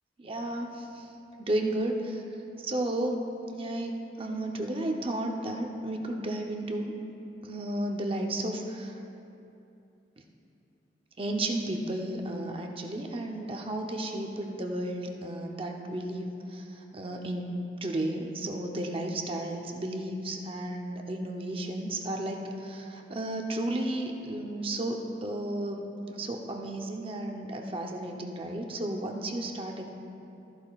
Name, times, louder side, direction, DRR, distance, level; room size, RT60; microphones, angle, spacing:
voice 1, 0.2-0.8 1.4-2.2 2.6-3.2 3.5-6.9 7.4-8.9 11.2-16.6 16.9-25.8 26.1-29.9, right 1 dB, 30° right, 2 dB, 0.8 m, -33 dB
14.0 x 11.0 x 2.4 m, 2.7 s
head